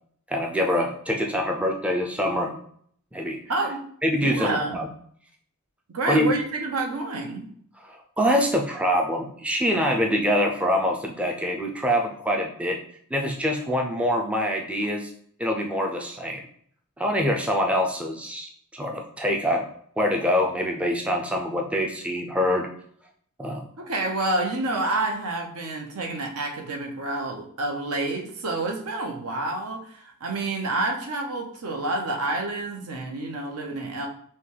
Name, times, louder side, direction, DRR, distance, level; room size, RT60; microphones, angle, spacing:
voice 1, 0.3-2.6 3.1-3.4 4.0-4.9 6.1-6.3 7.9-12.8 13.1-15.1 15.4-16.4 17.0-19.7 20.0-22.7 23.4-23.6, equal, 5° right, 1 dB, 0.3 m, -25 dB
voice 2, 3.5-3.8 4.1-4.8 5.9-7.5 23.8-34.1, right 2 dB, 80° right, 2 dB, 0.8 m, -28 dB
5.7 x 2.3 x 3.2 m, 0.63 s
head